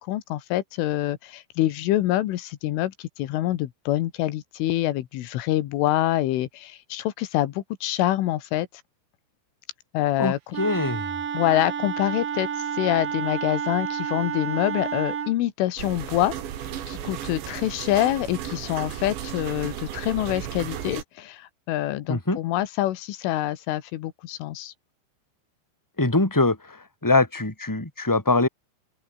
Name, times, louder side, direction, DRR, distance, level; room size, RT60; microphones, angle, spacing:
voice 1, 0.0-8.7 9.9-10.6 11.3-12.5 12.7-16.4 16.9-24.7, left 14 dB, 85° left, 3.9 m, -26 dB
voice 2, 10.2-11.0 22.1-22.4 26.0-26.6 27.0-28.5, left 2 dB, 5° left, 3.8 m, -22 dB
Wind instrument woodwind instrument, 10.5-15.4, right 7 dB, 50° right, 4.2 m, -30 dB
sound 1, 15.8-21.0, right 10 dB, 65° right, 4.5 m, -34 dB
open air
omnidirectional pair, 5.6 m